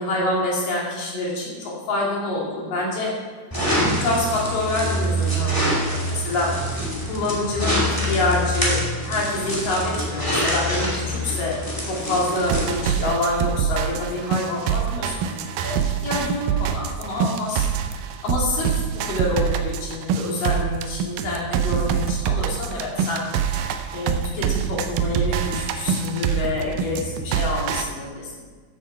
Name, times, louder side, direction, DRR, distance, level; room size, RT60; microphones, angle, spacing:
voice 1, 0.0-3.1 3.8-6.5 7.1-11.6 11.8-17.7 18.2-18.8 19.1-28.4, left 2 dB, 70° left, -4 dB, 4.4 m, -27 dB
sound 1, 3.5-12.8, equal, 5° left, 1.9 m, -25 dB
sound 2, 12.4-27.8, right 8 dB, 80° right, 2.4 m, -25 dB
14.0 x 8.5 x 4.6 m, 1.4 s
omnidirectional pair, 3.9 m